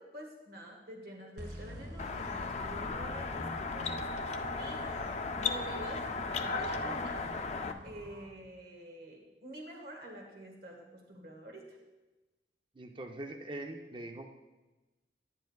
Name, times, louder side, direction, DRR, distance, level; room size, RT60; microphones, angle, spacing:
voice 1, 0.0-4.3 4.6-4.9 5.3-7.2 7.8-11.8, right 1 dB, 60° right, 1 dB, 1.4 m, -47 dB
sound 1, 1.4-8.2, equal, 75° right, 2.2 m, -47 dB
sound 2, 2.0-7.7, left 4 dB, 35° left, 0.4 m, -36 dB
voice 2, 12.7-14.3, right 1 dB, 30° right, 4 dB, 0.6 m, -42 dB
10.5 x 9.9 x 2.3 m, 1.1 s
head